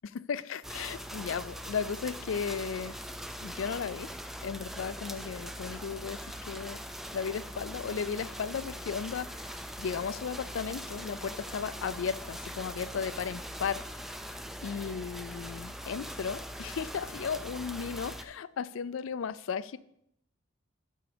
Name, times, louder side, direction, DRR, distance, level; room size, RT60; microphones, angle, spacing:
voice 1, 0.0-3.0 3.4-4.1 4.4-6.2 6.5-6.8 7.1-9.3 9.8-13.8 14.6-19.8, left 6 dB, 75° left, 0.4 m, -35 dB
sound 1, 0.6-18.2, equal, ahead, 0.4 m, -41 dB
11.0 x 4.6 x 5.2 m
head